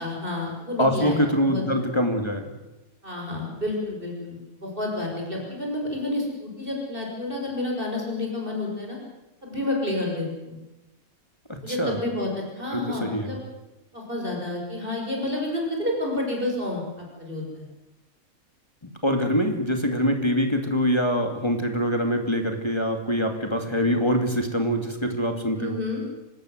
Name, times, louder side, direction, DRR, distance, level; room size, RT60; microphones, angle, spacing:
voice 1, 0.0-1.6 3.0-9.0 9.4-10.6 11.6-13.4 13.9-17.6 25.6-26.0, left 2 dB, 40° right, 0 dB, 6.5 m, -30 dB
voice 2, 0.8-2.4 11.5-12.0 12.7-13.3 19.0-25.8, equal, 20° left, 4 dB, 2.4 m, -24 dB
25.0 x 19.5 x 8.0 m, 1.0 s
omnidirectional pair, 1.5 m